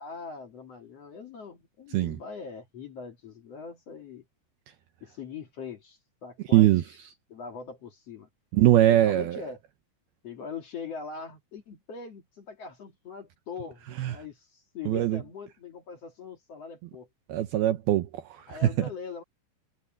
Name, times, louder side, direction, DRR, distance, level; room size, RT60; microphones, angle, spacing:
voice 1, 0.0-4.2 5.0-6.9 7.3-8.3 8.9-9.6 10.2-17.1 18.5-19.2, left 5 dB, 50° left, 2.0 m, -42 dB
voice 2, 6.5-6.8 8.5-9.4 14.0-14.1 14.9-15.2 17.3-18.7, right 13 dB, 85° right, 2.1 m, -22 dB
omnidirectional pair, 5.7 m